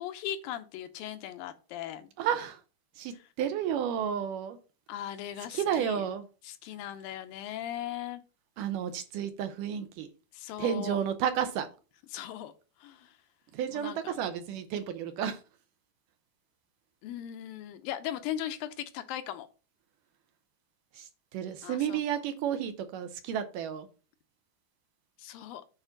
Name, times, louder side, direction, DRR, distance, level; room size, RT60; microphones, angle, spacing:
voice 1, 0.0-2.1 3.1-3.2 4.9-6.1 6.4-8.2 10.3-11.0 12.1-12.5 12.8-13.2 13.7-14.2 17.0-19.5 21.6-22.0 25.2-25.6, left 11 dB, 80° left, 10 dB, 2.4 m, -38 dB
voice 2, 2.2-2.6 3.0-4.6 5.5-6.2 8.6-10.1 10.6-11.7 13.5-15.4 21.0-21.1 21.3-23.9, right 9 dB, 75° right, 9 dB, 2.1 m, -31 dB
9.0 x 4.2 x 5.8 m, 0.34 s
omnidirectional pair, 4.3 m